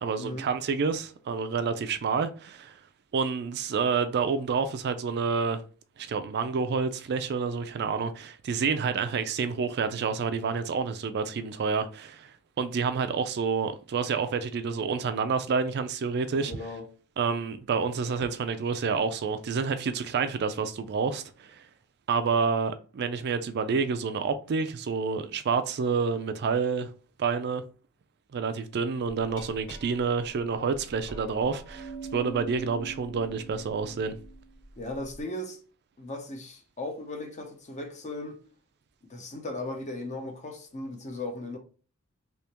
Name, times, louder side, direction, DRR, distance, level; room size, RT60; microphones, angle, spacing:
voice 1, 0.0-2.8 3.1-5.6 6.0-16.5 17.2-21.7 22.1-26.9 27.2-27.6 28.3-34.1, right 5 dB, 50° right, 0.4 m, -28 dB
voice 2, 16.3-16.9 34.8-35.6 36.0-38.4 39.1-41.6, left 2 dB, 35° left, 0.7 m, -37 dB
Glass, 29.4-35.2, right 3 dB, 60° left, 1.2 m, -44 dB
3.4 x 2.9 x 2.9 m
head